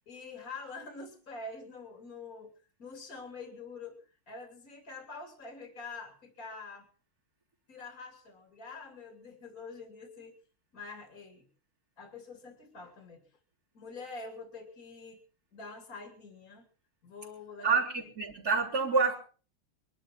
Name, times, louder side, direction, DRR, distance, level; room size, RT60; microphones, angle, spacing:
voice 1, 0.1-6.9 7.7-10.4 10.7-11.5 12.0-13.3 13.7-15.2 15.5-16.7 17.0-17.8, left 3 dB, 40° left, 4 dB, 3.1 m, -46 dB
voice 2, 17.6-19.2, right 4 dB, 45° right, 1 dB, 4.1 m, -27 dB
22.5 x 12.5 x 4.5 m, 0.39 s
omnidirectional pair, 2.3 m